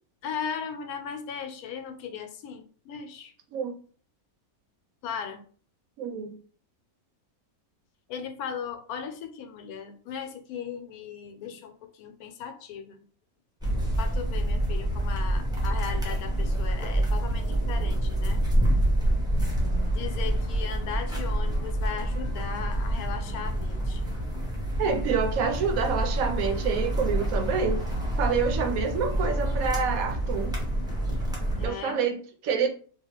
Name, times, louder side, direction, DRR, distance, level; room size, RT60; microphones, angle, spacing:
voice 1, 0.2-3.3 5.0-5.4 8.1-13.0 14.0-18.4 19.9-24.0 31.6-32.0, left 7 dB, 85° left, 6 dB, 1.1 m, -37 dB
voice 2, 6.0-6.3 24.8-27.8 28.2-30.6 31.6-32.7, right 5 dB, 75° right, 5 dB, 1.0 m, -27 dB
sound 1, 13.6-31.7, right 1 dB, 5° right, 0.6 m, -27 dB
2.8 x 2.3 x 2.9 m, 0.43 s
omnidirectional pair, 1.5 m